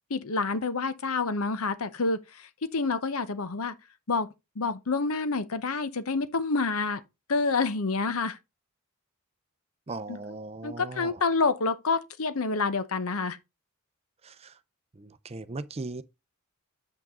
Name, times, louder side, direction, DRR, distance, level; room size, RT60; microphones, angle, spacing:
voice 1, 0.1-3.7 4.1-4.3 4.6-7.0 7.3-8.4 10.1-10.2 10.6-13.4, left 4 dB, 75° left, 0.8 m, -28 dB
voice 2, 9.9-11.2 14.2-14.6 15.0-16.0, right 3 dB, 25° right, 0.5 m, -38 dB
8.2 x 6.0 x 3.7 m
head